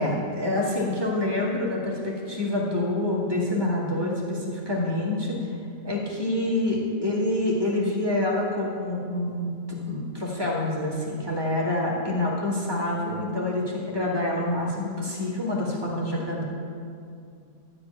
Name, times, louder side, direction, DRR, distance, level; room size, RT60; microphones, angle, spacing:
voice 1, 0.0-5.4 5.8-16.4, left 1 dB, 15° right, -5 dB, 2.0 m, -27 dB
12.5 x 4.9 x 8.5 m, 2.4 s
omnidirectional pair, 1.6 m